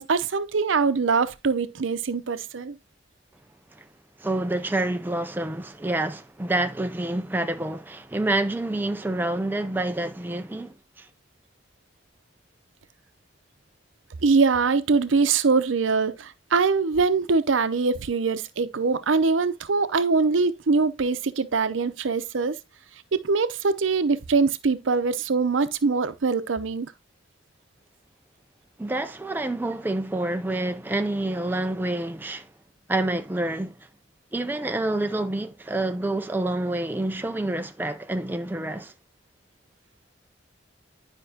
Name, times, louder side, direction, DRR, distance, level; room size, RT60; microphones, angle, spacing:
voice 1, 0.0-2.8 14.2-22.6 23.1-26.9, right 4 dB, 90° right, 0.6 m, -23 dB
voice 2, 4.2-11.1 28.8-32.5 32.9-33.9 34.3-38.9, right 2 dB, 10° right, 0.4 m, -28 dB
10.0 x 5.3 x 2.8 m
head